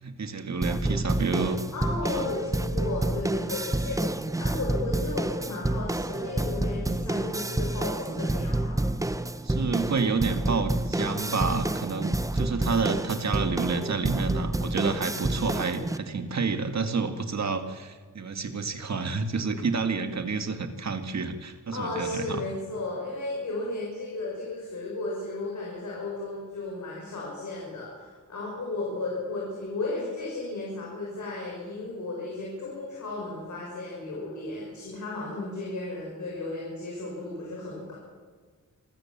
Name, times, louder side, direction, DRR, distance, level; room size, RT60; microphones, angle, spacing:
voice 1, 0.0-1.6 2.0-2.3 9.4-22.4, right 4 dB, 60° right, 7 dB, 1.9 m, -29 dB
sound 1, 0.6-16.0, right 1 dB, 10° right, 0.7 m, -29 dB
voice 2, 1.7-8.8 21.7-37.9, left 2 dB, 70° left, -4 dB, 6.4 m, -34 dB
27.0 x 15.0 x 7.4 m, 1.5 s
wide cardioid pair, 165°, 31 cm